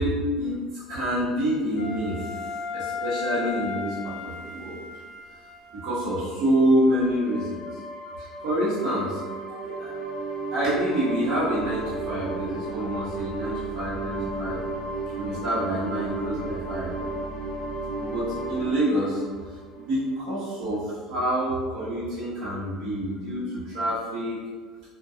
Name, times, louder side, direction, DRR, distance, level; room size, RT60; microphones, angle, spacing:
voice 1, 0.0-2.2 2.7-4.8 5.8-7.6 8.4-9.2 9.5-10.2 10.5-14.6 15.2-16.9 18.0-19.2 19.8-24.4, equal, 50° right, -11 dB, 0.9 m, -27 dB
Wind instrument woodwind instrument, 1.8-6.1, left 5 dB, 85° left, 0.4 m, -35 dB
sound 1, 5.9-20.4, right 2 dB, 35° left, 0.5 m, -34 dB
2.2 x 2.2 x 2.6 m, 1.5 s
cardioid pair, 150°, 0 cm